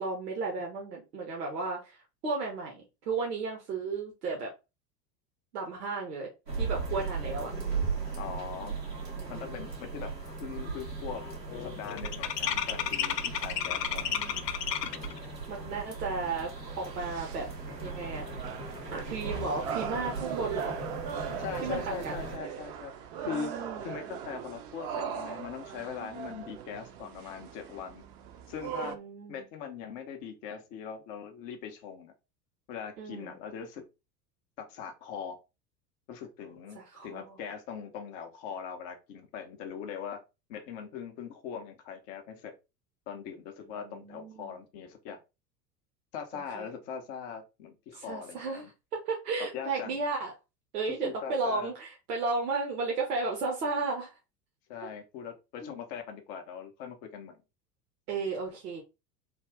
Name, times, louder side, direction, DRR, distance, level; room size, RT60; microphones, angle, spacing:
voice 1, 0.0-4.5 5.5-6.3 6.6-7.5 9.2-9.7 13.5-14.5 15.5-16.5 16.8-17.5 17.8-18.3 18.9-20.8 21.6-22.1 23.2-23.9 28.8-29.4 33.0-33.4 36.7-37.4 43.8-44.6 46.3-46.7 47.9-48.6 48.9-50.3 50.7-54.1 55.6-55.7 58.1-58.8, right 4 dB, 65° right, 0 dB, 1.1 m, -34 dB
sound 1, 6.5-22.4, right 4 dB, 90° right, 1.5 m, -38 dB
voice 2, 8.1-8.7 9.3-10.1 10.4-11.2 11.6-14.1 21.4-22.9 23.2-23.5 23.8-28.0 28.5-29.0 29.3-32.1 32.7-33.8 34.7-35.4 36.1-40.2 40.5-42.5 43.1-45.2 46.1-48.7 49.4-50.0 51.0-51.7 54.7-57.4, left 7 dB, 20° left, 5 dB, 0.3 m, -41 dB
sound 2, 9.5-9.6 9.9-10.3 10.6-15.2, left 9 dB, 75° left, 0.6 m, -33 dB
sound 3, 16.6-28.9, right 8 dB, 35° right, 0.5 m, -40 dB
3.3 x 2.3 x 3.3 m, 0.27 s
figure-of-eight pair, 80°, 49 cm